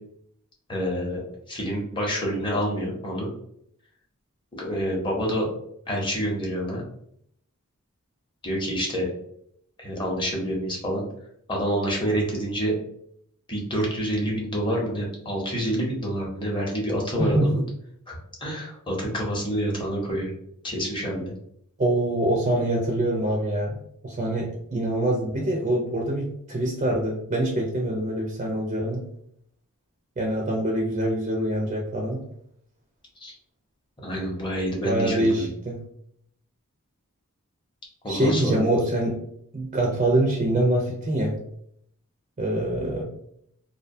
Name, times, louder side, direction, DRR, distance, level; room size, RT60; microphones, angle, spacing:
voice 1, 0.7-1.2 1.5-3.3 4.5-5.5 5.9-6.8 8.4-9.1 9.8-11.0 11.5-12.7 13.5-17.6 18.1-20.3 20.6-21.3 33.2-33.3 34.0-35.5 38.0-38.7, equal, 20° left, -2 dB, 0.6 m, -27 dB
voice 2, 17.2-17.5 21.8-23.7 24.0-29.0 30.2-32.2 34.8-35.8 38.1-39.2 39.5-41.4 42.4-43.0, right 1 dB, 35° right, -1 dB, 0.4 m, -24 dB
2.5 x 2.1 x 2.6 m, 0.71 s
head